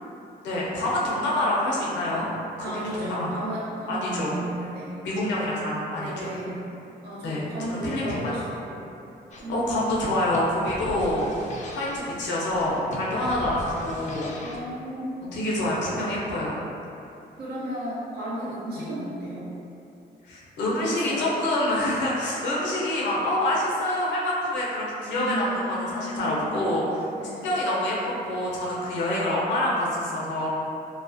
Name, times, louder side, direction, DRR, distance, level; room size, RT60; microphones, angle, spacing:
voice 1, 0.4-2.3 2.6-3.4 3.9-4.4 5.0-6.1 7.2-8.3 9.5-11.3 11.7-14.3 15.3-16.6 18.8-18.9 20.2-27.1 27.4-30.5, left 1 dB, 90° left, -6 dB, 0.6 m, -26 dB
voice 2, 2.6-5.0 6.0-8.8 9.4-10.2 14.4-15.3 17.4-19.5 20.7-21.4 25.1-26.5 27.1-27.5, right 1 dB, 60° right, -8 dB, 0.8 m, -34 dB
sound 1, 9.3-14.7, left 1 dB, 40° left, 0.4 m, -40 dB
2.4 x 2.0 x 2.6 m, 2.7 s
cardioid pair, 80°, 18 cm